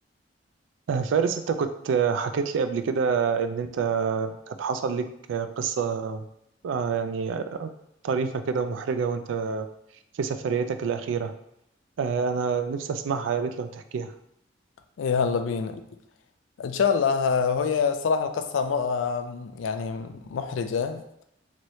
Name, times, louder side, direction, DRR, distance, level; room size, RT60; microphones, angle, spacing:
voice 1, 0.9-6.2 6.6-7.7 8.0-9.7 10.2-11.3 12.0-14.1, right 6 dB, 80° right, 0.3 m, -27 dB
voice 2, 15.0-15.8 16.6-21.0, left 6 dB, 85° left, 0.3 m, -26 dB
3.0 x 3.0 x 2.6 m
head